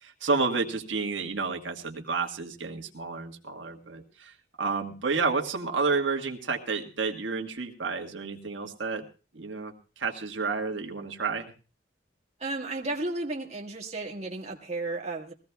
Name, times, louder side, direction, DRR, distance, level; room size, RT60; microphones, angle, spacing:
voice 1, 0.0-9.0 9.3-11.5, right 4 dB, 90° right, 3 dB, 1.6 m, -30 dB
voice 2, 12.4-15.3, right 2 dB, 35° right, 0 dB, 1.7 m, -33 dB
22.0 x 16.0 x 2.3 m, 0.34 s
head